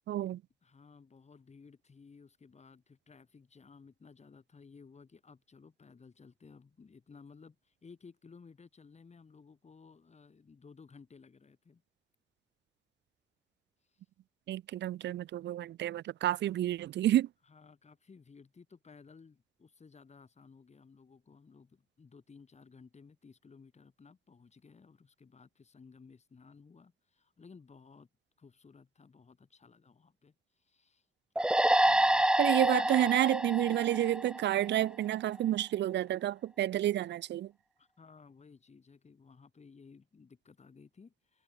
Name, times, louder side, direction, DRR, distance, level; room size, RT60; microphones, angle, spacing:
voice 1, 0.1-0.4 14.5-17.3 32.4-37.5, right 13 dB, 60° right, 0.5 m, -30 dB
voice 2, 0.6-11.8 13.9-14.0 17.5-28.1 28.4-31.1 31.8-32.3 37.8-41.4, left 5 dB, 35° left, 5.3 m, -57 dB
sound 1, 31.4-34.8, right 1 dB, 5° right, 0.5 m, -27 dB
cardioid pair, 90°, 20 cm